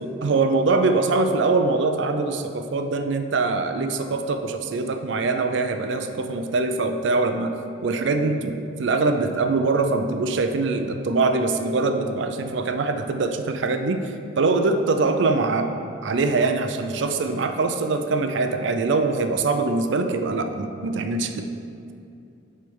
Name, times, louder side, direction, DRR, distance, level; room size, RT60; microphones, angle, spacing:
voice 1, 0.0-7.5 7.8-15.7 16.0-21.5, right 3 dB, 70° right, 6 dB, 0.4 m, -23 dB
7.6 x 3.4 x 5.3 m, 2.6 s
head